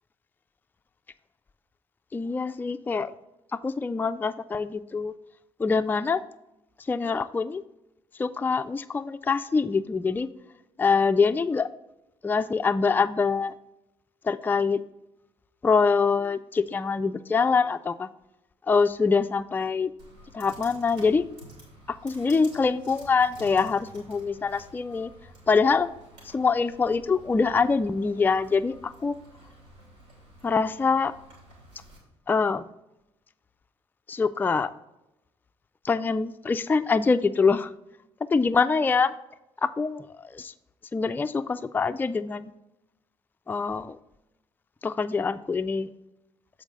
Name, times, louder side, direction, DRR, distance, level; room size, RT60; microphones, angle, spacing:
voice 1, 2.1-3.1 3.5-5.1 5.6-6.2 6.9-7.6 8.2-10.3 10.8-11.7 12.2-13.5 14.2-14.8 15.6-18.1 18.7-19.9 20.3-21.3 21.9-25.1 25.5-25.9 26.2-29.1 30.4-31.1 32.3-32.6 34.1-34.7 35.8-37.7 38.3-39.1 39.6-40.5 40.9-42.5 43.5-44.0 44.8-45.9, left 5 dB, 15° left, 10 dB, 0.3 m, -24 dB
Computer keyboard, 20.0-32.0, right 1 dB, 80° right, 2.7 m, -51 dB
7.2 x 4.6 x 5.0 m, 0.92 s
hypercardioid pair, 45°, 15 cm